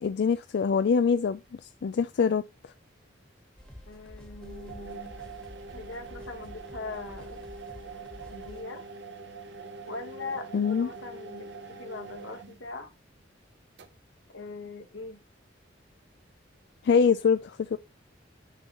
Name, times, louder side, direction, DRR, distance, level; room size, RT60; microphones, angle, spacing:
voice 1, 0.0-2.4 10.5-10.9 16.8-17.8, left 5 dB, 60° left, 0.4 m, -24 dB
sound 1, 3.6-8.6, equal, 5° left, 1.5 m, -48 dB
voice 2, 3.9-5.1 5.7-7.4 8.3-8.8 9.9-12.9 14.3-15.2, left 3 dB, 85° left, 1.5 m, -41 dB
sound 2, 4.4-12.8 13.8-13.9, right 3 dB, 65° right, 0.7 m, -44 dB
9.9 x 3.9 x 2.9 m
head